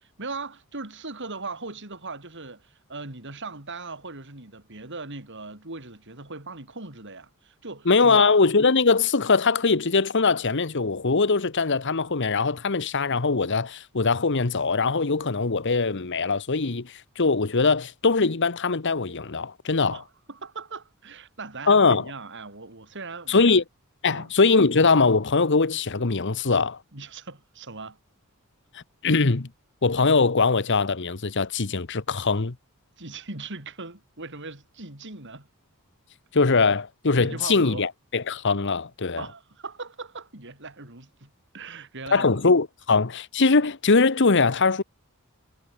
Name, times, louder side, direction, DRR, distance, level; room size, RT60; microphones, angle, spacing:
voice 1, 0.2-8.4 19.9-23.6 24.0-24.3 26.9-28.0 33.0-35.5 37.2-37.8 39.2-42.4, right 3 dB, 55° right, 4.4 m, -39 dB
voice 2, 7.9-20.0 21.7-22.0 23.3-23.6 24.0-26.8 28.7-29.5 29.8-32.5 36.3-39.2 42.1-44.8, left 4 dB, 55° left, 1.1 m, -21 dB
head